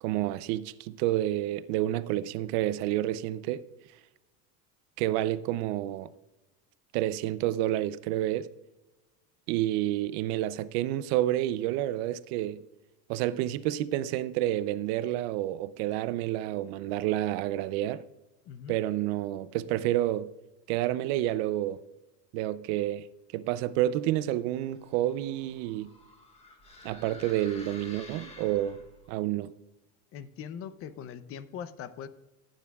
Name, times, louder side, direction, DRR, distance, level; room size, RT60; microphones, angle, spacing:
voice 1, 0.0-3.6 5.0-6.1 6.9-8.5 9.5-12.6 13.1-18.0 18.7-20.3 20.7-21.8 22.3-23.1 23.3-25.9 26.8-28.8 29.1-29.5, right 14 dB, 60° right, 0.6 m, -29 dB
sound 1, 24.6-29.1, left 2 dB, 15° left, 1.5 m, -51 dB
voice 2, 30.1-32.1, left 8 dB, 35° left, 0.6 m, -41 dB
16.5 x 9.1 x 2.3 m
supercardioid pair, 140°, 38 cm